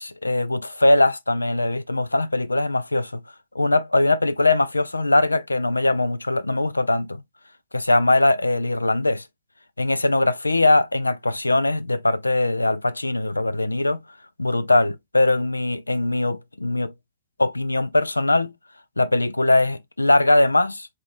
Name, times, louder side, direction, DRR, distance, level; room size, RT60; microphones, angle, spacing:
voice 1, 0.0-3.1 3.6-7.2 7.7-9.2 9.8-14.0 14.4-16.9 17.4-18.5 19.0-20.9, left 2 dB, 85° left, 0.3 m, -21 dB
4.0 x 3.8 x 3.0 m
figure-of-eight pair, 110°, 0 cm